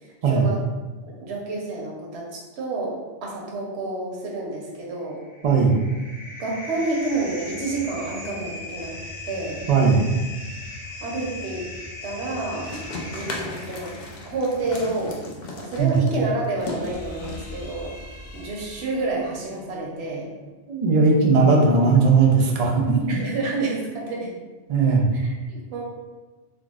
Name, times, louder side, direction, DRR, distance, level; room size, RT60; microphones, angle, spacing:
voice 1, 0.2-0.6 1.0-5.2 6.4-8.9 9.3-9.6 11.0-11.6 12.0-12.7 13.1-13.9 14.3-15.2 15.6-17.9 18.3-20.3 23.1-24.3 25.1-25.8, right 2 dB, 75° right, -2 dB, 0.9 m, -29 dB
sound 1, 4.9-19.5, left 1 dB, 75° left, 1.5 m, -39 dB
voice 2, 5.4-5.8 9.7-10.1 15.8-16.0 20.7-23.2 24.7-25.1, right 4 dB, 55° right, -1 dB, 0.4 m, -18 dB
sound 2, 12.6-19.1, left 2 dB, 55° left, 0.5 m, -37 dB
3.6 x 2.3 x 2.3 m, 1.2 s
omnidirectional pair, 1.1 m